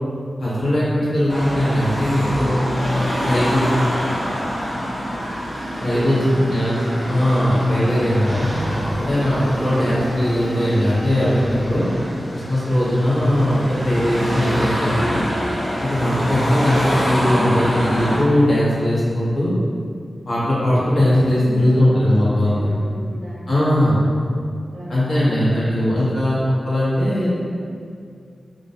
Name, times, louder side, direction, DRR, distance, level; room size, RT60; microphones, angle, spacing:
voice 1, 0.4-2.6 3.2-3.6 5.8-6.8 7.1-8.5 9.0-11.9 12.3-15.2 15.8-19.5 20.3-22.5 23.5-24.0 24.9-27.3, left 1 dB, 65° left, -10 dB, 0.9 m, -19 dB
Car passing by / Traffic noise roadway noise / Engine, 1.3-18.2, equal, 50° left, 1.3 m, -26 dB
voice 2, 1.8-3.2 5.8-6.5 6.9-7.2 20.9-22.1 22.4-23.5 24.7-26.1, equal, 70° right, -6 dB, 0.6 m, -36 dB
sound 1, 5.6-12.1, equal, 15° right, 0.6 m, -30 dB
2.4 x 2.0 x 2.7 m, 2.3 s
cardioid pair, 60°, 0 cm